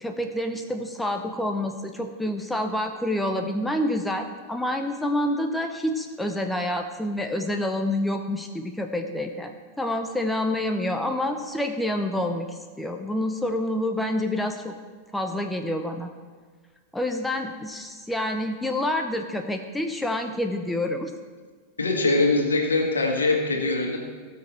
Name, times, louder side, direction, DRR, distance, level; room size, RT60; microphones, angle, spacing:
voice 1, 0.0-14.7 15.1-16.1 16.9-21.1, left 1 dB, 5° left, 5 dB, 0.8 m, -28 dB
voice 2, 21.8-24.0, left 2 dB, 75° left, 2 dB, 1.7 m, -22 dB
16.5 x 6.5 x 4.4 m, 1.5 s
figure-of-eight pair, 90°, 0 cm